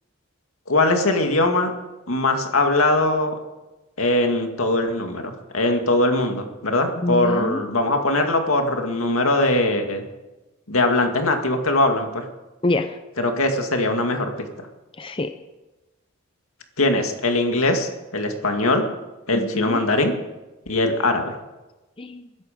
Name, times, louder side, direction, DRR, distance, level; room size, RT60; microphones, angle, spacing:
voice 1, 0.7-1.7 2.1-3.4 4.0-10.0 10.7-12.2 13.2-14.3 16.8-18.9 19.3-20.1 20.7-21.3, left 2 dB, 80° left, 4 dB, 2.1 m, -21 dB
voice 2, 7.0-7.6 12.6-13.0 15.0-15.3 19.3-19.8 22.0-22.3, left 2 dB, 25° left, 9 dB, 0.5 m, -26 dB
21.0 x 11.0 x 5.2 m, 1.1 s
head